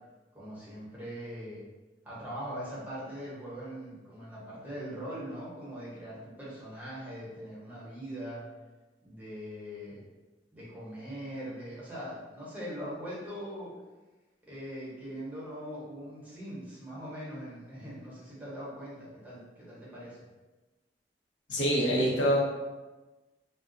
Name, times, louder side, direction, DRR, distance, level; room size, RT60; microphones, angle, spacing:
voice 1, 0.3-1.6 2.0-8.4 9.0-10.0 10.5-13.7 14.4-20.2, equal, 10° right, -8 dB, 1.0 m, -41 dB
voice 2, 21.5-22.4, equal, 90° left, -5 dB, 0.9 m, -25 dB
2.4 x 2.3 x 3.8 m, 1.2 s
head